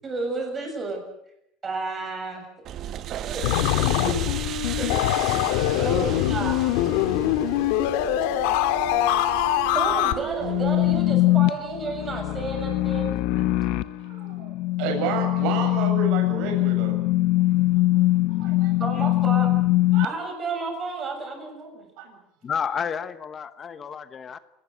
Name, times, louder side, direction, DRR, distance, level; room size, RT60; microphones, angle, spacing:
voice 1, 0.0-1.0 1.6-2.4 3.3-3.4 4.0-4.2 4.8-5.2 5.8-6.6 9.7-13.2 18.8-19.5 20.0-21.9, right 3 dB, 20° right, 7.1 m, -31 dB
sound 1, 2.6-11.1, right 11 dB, 35° right, 1.0 m, -35 dB
sound 2, 3.4-10.1, left 13 dB, 75° left, 2.1 m, -23 dB
voice 2, 7.7-9.3 13.4-13.8 14.1-17.0 18.3-19.0 19.9-20.1 22.0-22.2, right 6 dB, 60° right, 7.5 m, -33 dB
sound 3, 10.4-20.1, left 17 dB, 55° left, 0.9 m, -22 dB
voice 3, 22.4-24.4, left 7 dB, 20° left, 1.1 m, -30 dB
28.0 x 19.5 x 8.1 m
cardioid pair, 175°, 0 cm